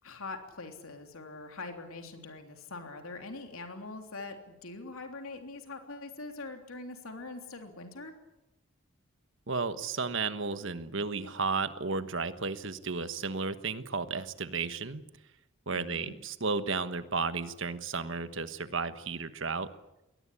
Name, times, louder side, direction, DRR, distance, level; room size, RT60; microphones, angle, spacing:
voice 1, 0.0-8.1 15.7-16.1, left 3 dB, 85° left, 5 dB, 3.3 m, -43 dB
voice 2, 9.5-15.0 15.7-19.7, right 4 dB, 65° right, 11 dB, 1.3 m, -33 dB
22.0 x 19.0 x 10.0 m, 0.95 s
head